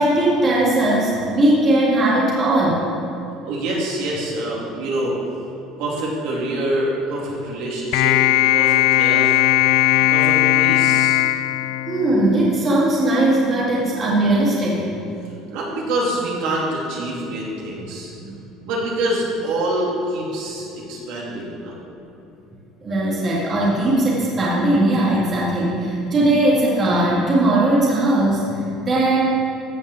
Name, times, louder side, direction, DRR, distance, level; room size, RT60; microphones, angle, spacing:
voice 1, 0.0-2.9 11.9-15.0 18.2-18.3 22.8-29.2, right 1 dB, 25° right, -6 dB, 2.0 m, -19 dB
voice 2, 3.4-5.4 5.8-8.2 8.5-9.3 10.1-11.2 15.5-18.1 18.6-21.8, right 1 dB, 65° right, -4 dB, 2.7 m, -25 dB
sound 1, 7.9-12.4, left 14 dB, 80° left, 0.4 m, -17 dB
14.5 x 5.4 x 7.0 m, 3.0 s
cardioid pair, 175°, 0 cm